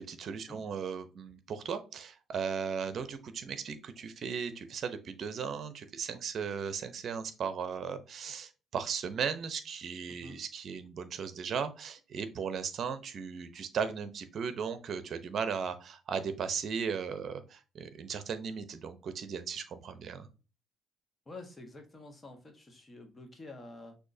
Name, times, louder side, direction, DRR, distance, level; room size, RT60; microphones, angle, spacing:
voice 1, 0.0-20.3, right 6 dB, 55° right, 0.7 m, -37 dB
voice 2, 21.3-24.0, left 2 dB, 25° left, 1.3 m, -48 dB
6.1 x 2.8 x 2.7 m
cardioid pair, 85°, 0 cm